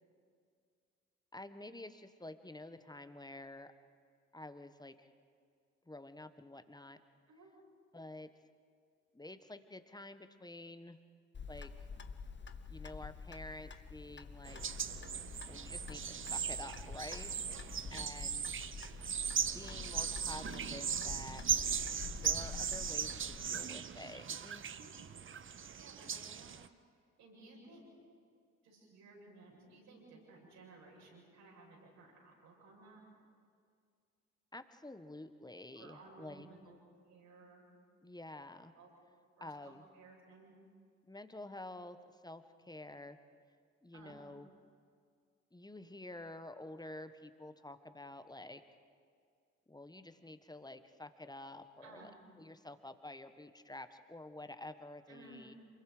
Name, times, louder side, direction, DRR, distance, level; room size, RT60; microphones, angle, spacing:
voice 1, 1.3-3.7 4.3-5.1 5.9-7.0 7.9-8.3 9.1-11.0 11.5-11.7 12.7-14.6 15.5-17.3 17.9-18.5 19.4-21.6 22.2-24.7 34.5-36.5 38.0-38.7 39.4-39.8 41.0-43.2 43.8-44.5 45.5-48.6 49.7-52.1 52.4-55.5, left 2 dB, 10° left, 10 dB, 1.4 m, -49 dB
Clock, 11.3-23.5, left 5 dB, 30° left, 1.1 m, -48 dB
sound 1, 14.5-26.7, right 7 dB, 35° right, 0.9 m, -38 dB
voice 2, 25.8-26.7 27.2-27.9 28.6-33.0 35.8-36.8 37.1-37.6 38.8-38.9 39.4-40.5 43.9-44.2 51.8-52.1 55.1-55.5, right 3 dB, 70° right, -3 dB, 7.4 m, -57 dB
27.5 x 22.0 x 5.1 m, 2.2 s
hypercardioid pair, 40°, 36 cm